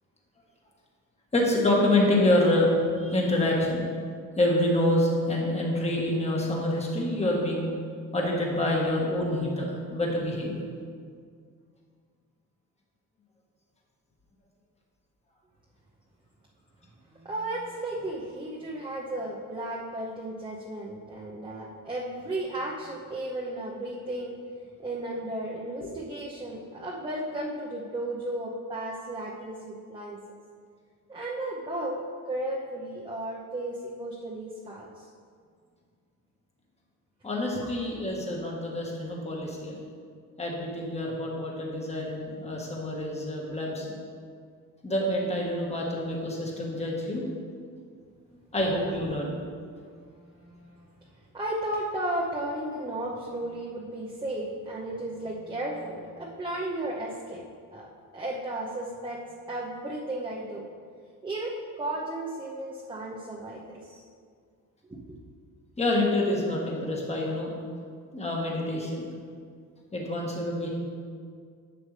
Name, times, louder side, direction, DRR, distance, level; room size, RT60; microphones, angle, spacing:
voice 1, 1.3-3.8 4.4-7.6 8.1-10.5 25.8-25.9 37.2-39.8 40.4-43.8 44.8-47.2 48.5-49.3 65.8-67.5 68.1-69.1 69.9-70.7, left 1 dB, 20° left, -1 dB, 1.6 m, -27 dB
voice 2, 17.1-24.3 24.8-30.2 31.1-35.1 50.2-50.8 51.3-57.4 57.7-57.9 58.1-60.7 61.2-64.0 64.9-65.0, right 1 dB, 15° right, -4 dB, 0.9 m, -34 dB
11.0 x 7.9 x 3.3 m, 2.1 s
cardioid pair, 150°, 33 cm